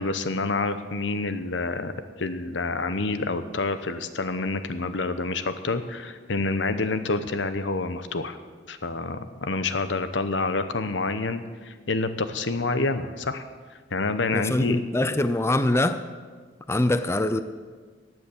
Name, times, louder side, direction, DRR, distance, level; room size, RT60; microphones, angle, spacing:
voice 1, 0.0-8.4 8.7-13.4 13.9-14.8, left 3 dB, 80° left, 11 dB, 1.0 m, -28 dB
voice 2, 14.3-16.0 16.7-17.4, left 1 dB, 15° left, 11 dB, 0.5 m, -23 dB
16.0 x 9.4 x 7.2 m, 1.5 s
head